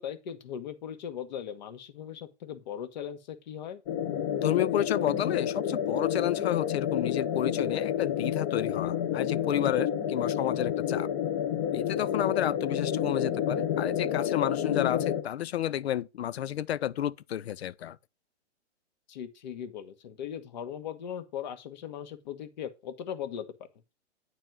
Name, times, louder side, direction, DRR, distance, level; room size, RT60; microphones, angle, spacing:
voice 1, 0.0-3.8 9.6-9.9 19.1-23.5, left 9 dB, 40° left, 1.2 m, -39 dB
sound 1, 3.9-15.2, left 9 dB, 20° left, 0.8 m, -29 dB
voice 2, 4.4-11.1 11.7-18.0, left 11 dB, 65° left, 0.6 m, -31 dB
9.5 x 4.2 x 5.9 m
hypercardioid pair, 160°, 35 cm